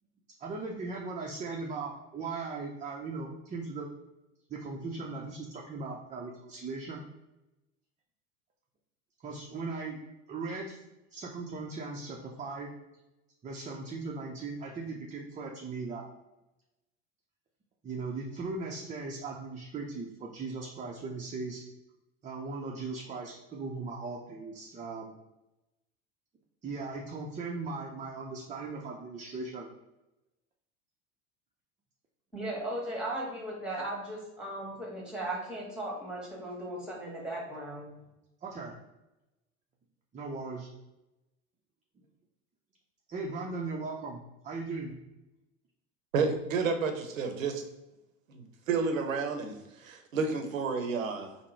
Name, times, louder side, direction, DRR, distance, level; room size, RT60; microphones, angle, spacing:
voice 1, 0.4-3.9 4.5-7.0 9.2-10.0 10.3-10.8 11.1-12.8 13.4-16.1 17.8-21.6 22.2-25.1 26.6-29.7 38.4-38.7 40.1-40.7 43.1-44.9, right 3 dB, 20° right, -2 dB, 0.5 m, -38 dB
voice 2, 32.3-37.9, right 1 dB, ahead, -3 dB, 1.4 m, -37 dB
voice 3, 46.1-47.6 48.3-51.4, right 4 dB, 85° right, 6 dB, 0.7 m, -31 dB
3.6 x 2.1 x 4.4 m, 0.98 s
hypercardioid pair, 75°, 39 cm